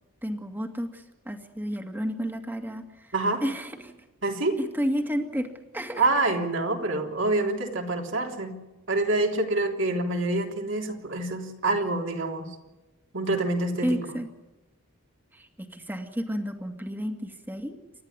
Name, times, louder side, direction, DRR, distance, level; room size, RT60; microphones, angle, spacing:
voice 1, 0.2-3.1 3.4-4.1 4.6-6.1 13.8-14.3 15.3-17.8, equal, 10° right, 5 dB, 2.1 m, -32 dB
voice 2, 4.2-4.6 6.0-8.6 8.9-12.5 13.1-14.0, right 2 dB, 60° right, 2 dB, 3.5 m, -26 dB
29.0 x 13.5 x 9.8 m, 1.1 s
head